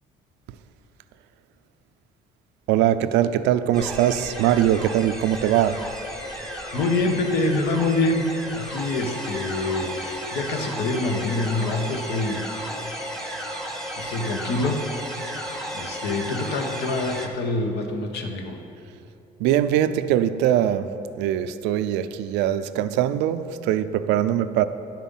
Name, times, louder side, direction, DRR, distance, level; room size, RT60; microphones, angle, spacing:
voice 1, 2.7-5.8 19.4-20.9 21.2-24.6, right 11 dB, 80° right, 0.4 m, -22 dB
sound 1, 3.7-17.3, equal, 5° left, 1.1 m, -34 dB
voice 2, 6.7-8.2 8.5-12.4 13.2-13.6 14.0-15.0 15.7-18.6, left 2 dB, 75° left, 1.1 m, -26 dB
9.6 x 7.4 x 5.5 m
supercardioid pair, 90°, 18 cm